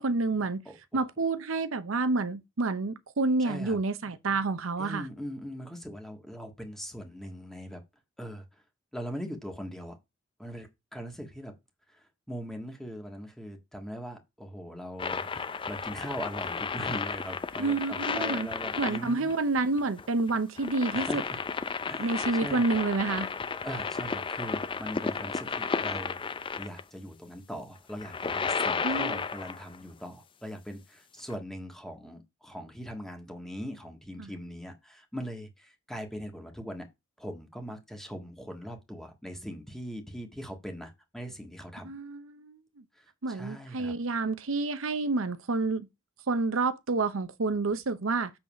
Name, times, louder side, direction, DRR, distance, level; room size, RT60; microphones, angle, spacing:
voice 1, 0.0-0.6 0.9-5.0 17.6-18.5 18.8-21.2 22.0-23.3 28.8-29.2 34.2-34.3 41.8-42.6 43.2-45.9 46.3-48.3, right 3 dB, 80° right, 0.7 m, -29 dB
voice 2, 0.6-1.0 3.4-3.8 4.8-7.8 8.2-8.6 8.9-10.0 10.4-11.5 11.9-19.3 20.9-21.4 21.9-22.7 23.6-26.2 26.6-36.8 37.2-41.9 42.9-43.9, equal, ahead, 1.6 m, -41 dB
sound 1, 15.0-26.8 27.9-29.8 31.3-31.4, left 5 dB, 25° left, 0.5 m, -33 dB
7.4 x 4.0 x 6.2 m
head